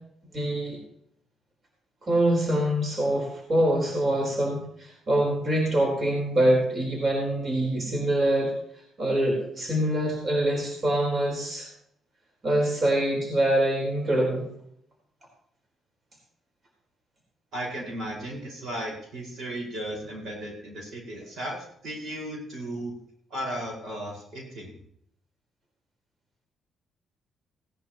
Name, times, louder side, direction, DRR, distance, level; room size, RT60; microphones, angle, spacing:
voice 1, 0.3-0.8 2.0-8.5 9.0-11.7 12.4-14.5, right 1 dB, 40° right, -2 dB, 4.1 m, -24 dB
voice 2, 17.5-22.9 23.3-24.8, right 1 dB, 70° right, -2 dB, 5.1 m, -35 dB
17.5 x 11.0 x 3.0 m, 0.69 s
cardioid pair, 90°, 0 cm